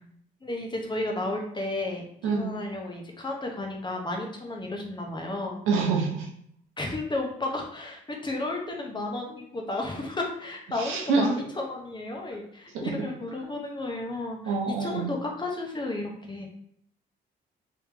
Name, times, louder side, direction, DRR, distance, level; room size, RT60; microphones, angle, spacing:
voice 1, 0.4-5.6 6.8-14.5 14.8-16.5, left 2 dB, 25° left, 1 dB, 0.9 m, -33 dB
voice 2, 2.2-2.5 5.7-6.3 10.8-11.3 12.7-13.1 14.5-15.1, right 4 dB, 90° right, 1 dB, 0.9 m, -26 dB
3.3 x 3.0 x 3.4 m, 0.69 s
cardioid pair, 90°, 20 cm